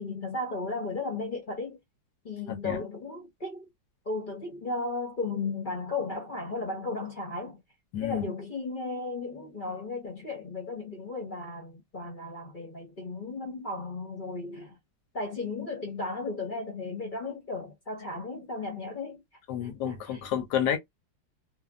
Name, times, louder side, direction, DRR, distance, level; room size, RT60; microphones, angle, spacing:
voice 1, 0.0-1.8 2.2-3.7 4.0-7.6 8.0-14.8 15.1-19.2 19.6-20.2, left 3 dB, 40° left, 0.7 m, -35 dB
voice 2, 2.5-2.8 7.9-8.2 19.5-20.8, left 9 dB, 70° left, 1.1 m, -30 dB
3.3 x 2.0 x 2.3 m
omnidirectional pair, 2.0 m